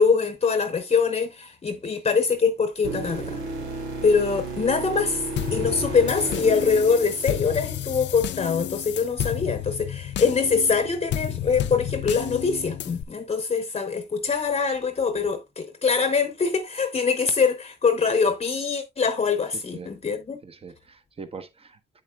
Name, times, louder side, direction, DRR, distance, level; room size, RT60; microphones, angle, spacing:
voice 1, 0.0-3.4 4.0-5.2 5.5-20.4, left 5 dB, 30° left, 0.9 m, -23 dB
Bumpy Tsat, 2.8-7.9 11.9-12.0, right 3 dB, 85° right, 2.5 m, -33 dB
sound 1, 5.4-13.0, left 11 dB, 65° left, 0.6 m, -31 dB
voice 2, 19.5-19.9 20.4-22.0, right 5 dB, 30° right, 1.1 m, -42 dB
8.1 x 7.2 x 2.3 m
cardioid pair, 90°, 20 cm